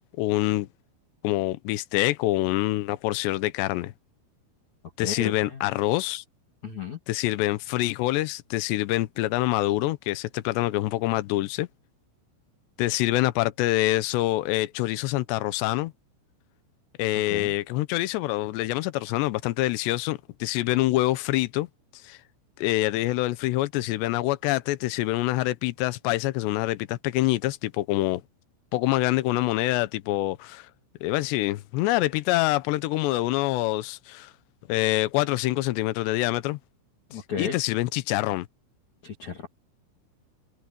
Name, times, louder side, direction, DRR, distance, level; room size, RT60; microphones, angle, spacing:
voice 1, 0.2-0.7 1.2-3.9 5.0-6.2 7.1-11.7 12.8-15.9 17.0-21.7 22.0-22.2 22.6-28.2 28.7-30.7 31.0-34.3 34.7-36.6 37.1-38.5, left 17 dB, 75° left, 2.6 m, -26 dB
voice 2, 5.0-5.6 6.6-7.0 17.3-17.5 37.1-37.6 39.0-39.5, left 6 dB, 40° left, 3.2 m, -34 dB
open air
omnidirectional pair, 6.0 m